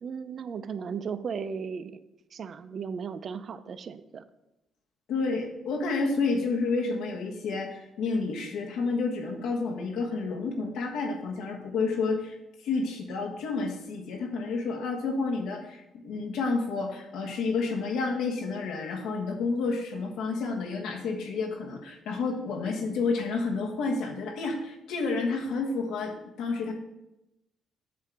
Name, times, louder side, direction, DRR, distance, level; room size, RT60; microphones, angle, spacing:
voice 1, 0.0-2.0 2.3-4.2, right 6 dB, 55° right, 12 dB, 0.5 m, -36 dB
voice 2, 5.1-12.4 12.6-26.7, left 4 dB, 85° left, 2 dB, 1.3 m, -30 dB
8.2 x 3.6 x 6.3 m, 0.91 s
cardioid pair, 90°, 0 cm